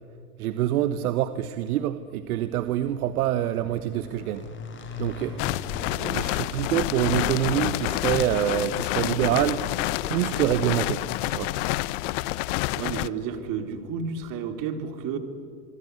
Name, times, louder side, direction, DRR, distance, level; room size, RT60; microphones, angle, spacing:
voice 1, 0.4-4.4 5.0-5.4 5.9-9.6 10.1-11.0 11.3-11.5, right 12 dB, 65° right, 12 dB, 1.2 m, -26 dB
Motorcycle / Engine, 2.2-9.5, left 3 dB, 25° left, 5.4 m, -42 dB
sound 1, 5.4-13.1, left 19 dB, 50° left, 0.9 m, -28 dB
voice 2, 12.8-15.2, right 6 dB, 45° right, 7 dB, 3.6 m, -31 dB
25.5 x 23.0 x 9.6 m, 2.3 s
hypercardioid pair, 105°, 47 cm